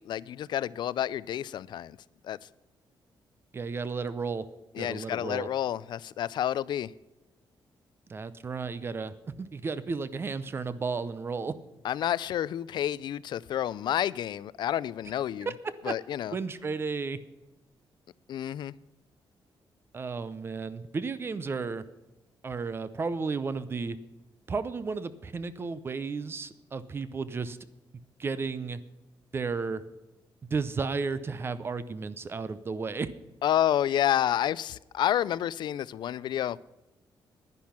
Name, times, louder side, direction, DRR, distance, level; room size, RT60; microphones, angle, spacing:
voice 1, 0.0-2.0 2.2-2.4 4.8-6.9 11.8-15.5 15.8-16.3 18.3-18.7 33.4-36.6, left 11 dB, 65° left, 0.4 m, -29 dB
voice 2, 3.5-4.4 4.8-5.5 8.1-11.5 15.5-15.6 15.8-15.9 16.3-17.2 19.9-21.8 22.4-24.0 24.5-27.6 28.2-28.8 29.3-29.8 30.5-33.1, right 4 dB, 30° right, 0.6 m, -33 dB
10.5 x 10.5 x 5.8 m
wide cardioid pair, 175°, 8 cm